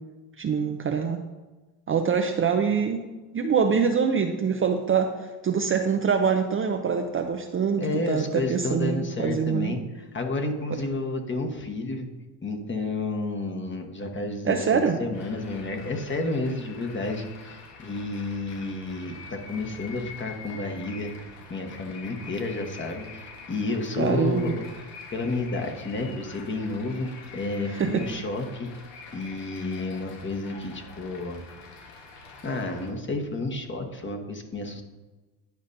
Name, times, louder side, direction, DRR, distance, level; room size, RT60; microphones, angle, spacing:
voice 1, 0.4-1.2 1.9-3.0 3.3-9.7 14.4-15.0 24.0-24.5 27.8-28.1, right 6 dB, 30° right, 4 dB, 0.5 m, -24 dB
voice 2, 7.8-12.1 12.4-28.7 29.1-31.4 32.4-34.8, left 2 dB, 25° left, 3 dB, 1.2 m, -31 dB
sound 1, 15.1-32.9, left 4 dB, 60° left, 1.4 m, -45 dB
10.5 x 5.1 x 2.7 m, 1.2 s
supercardioid pair, 75°, 47 cm